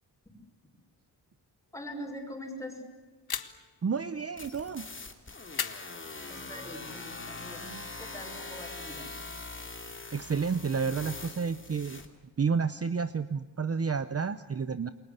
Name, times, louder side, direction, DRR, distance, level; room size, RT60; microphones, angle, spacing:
voice 1, 1.7-2.8 6.3-7.7 8.0-9.1, left 1 dB, 5° left, 3 dB, 6.0 m, -42 dB
sound 1, 3.3-3.8 5.5-6.5, left 7 dB, 60° left, 1.5 m, -37 dB
voice 2, 3.8-4.9 10.1-12.0 12.4-14.9, right 5 dB, 35° right, 13 dB, 0.8 m, -30 dB
sound 2, 4.4-12.1, left 3 dB, 30° left, 2.8 m, -42 dB
28.5 x 22.5 x 8.2 m, 1.3 s
wide cardioid pair, 120°, 42 cm